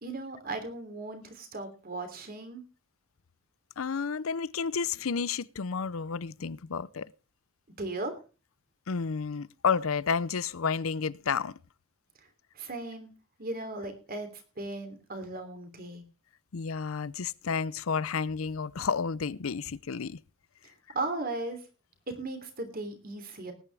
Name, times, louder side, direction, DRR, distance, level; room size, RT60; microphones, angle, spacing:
voice 1, 0.0-2.6 7.8-8.1 12.5-13.1 13.4-16.0 20.6-21.6 22.2-23.5, right 2 dB, 45° right, 3.1 m, -37 dB
voice 2, 3.8-7.1 8.9-11.6 16.5-20.2, left 5 dB, 85° left, 0.6 m, -31 dB
19.0 x 10.0 x 3.4 m
head